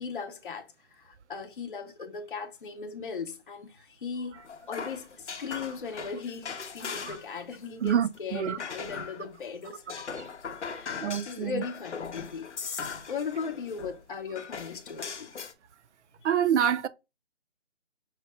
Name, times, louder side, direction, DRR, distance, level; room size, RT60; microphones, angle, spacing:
voice 1, 0.0-4.4 4.7-10.3 10.6-15.3 16.2-16.3, left 5 dB, 50° left, 0.6 m, -38 dB
sound 1, 4.4-7.4 7.6-9.3 9.6-14.0 14.4-15.5, left 6 dB, 90° left, 0.7 m, -39 dB
voice 2, 7.8-8.6 11.0-11.6 16.2-16.9, right 9 dB, 80° right, 0.5 m, -26 dB
5.6 x 2.2 x 2.7 m
hypercardioid pair, 170°, 34 cm